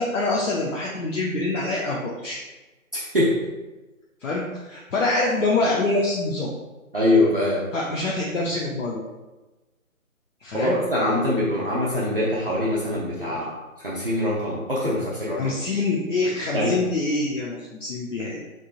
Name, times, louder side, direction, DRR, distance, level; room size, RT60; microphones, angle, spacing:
voice 1, 0.0-2.4 4.2-6.5 7.7-9.1 10.4-10.8 13.2-13.5 15.4-18.4, left 2 dB, 60° left, -4 dB, 0.7 m, -25 dB
voice 2, 2.9-3.4 6.9-7.7 10.5-13.6 13.8-15.6 16.5-16.7, left 1 dB, 40° right, -8 dB, 0.6 m, -23 dB
3.7 x 3.6 x 2.4 m, 1.1 s
hypercardioid pair, 175°, 43 cm